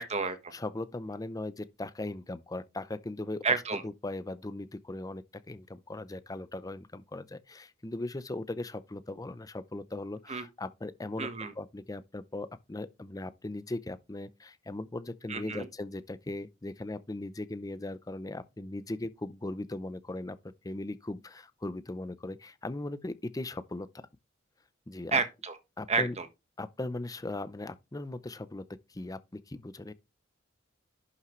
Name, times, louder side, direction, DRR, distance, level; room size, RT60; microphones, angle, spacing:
voice 1, 0.0-0.5 3.4-3.8 10.3-10.5 11.2-11.5 15.3-15.7 25.1-25.6 25.9-26.3, right 4 dB, 35° right, 1.3 m, -30 dB
voice 2, 0.5-11.3 11.6-20.4 20.6-23.9 24.9-25.2 25.8-26.2 26.6-28.6 28.9-29.9, left 2 dB, 20° left, 0.5 m, -38 dB
11.0 x 5.7 x 3.1 m
head